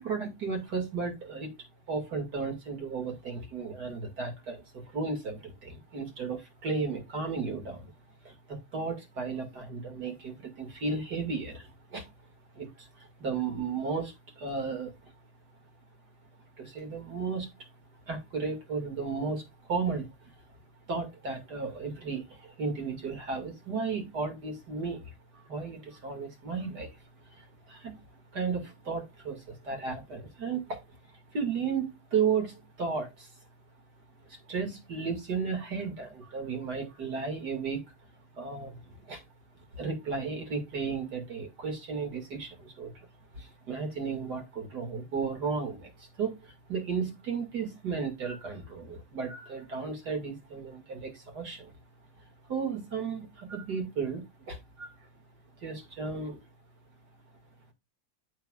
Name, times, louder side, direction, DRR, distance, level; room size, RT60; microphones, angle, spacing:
voice 1, 0.0-1.5 1.9-7.9 8.2-12.1 12.5-14.9 16.6-17.5 18.1-20.1 20.9-26.9 27.3-28.0 28.3-30.8 31.3-33.3 34.3-37.8 38.3-39.2 39.7-43.1 43.3-51.7 52.5-54.9 55.6-56.4, right 5 dB, 85° right, 2.9 m, -34 dB
14.0 x 4.7 x 2.4 m
omnidirectional pair, 1.7 m